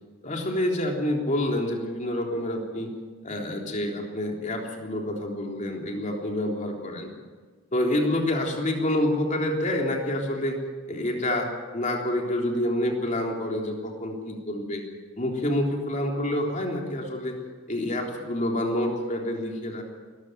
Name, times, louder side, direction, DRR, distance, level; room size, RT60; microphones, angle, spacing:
voice 1, 0.2-2.9 3.2-7.1 7.7-10.6 10.9-14.8 15.2-17.4 17.7-19.8, left 1 dB, 35° left, 1 dB, 3.6 m, -27 dB
21.0 x 15.0 x 9.3 m, 1.5 s
head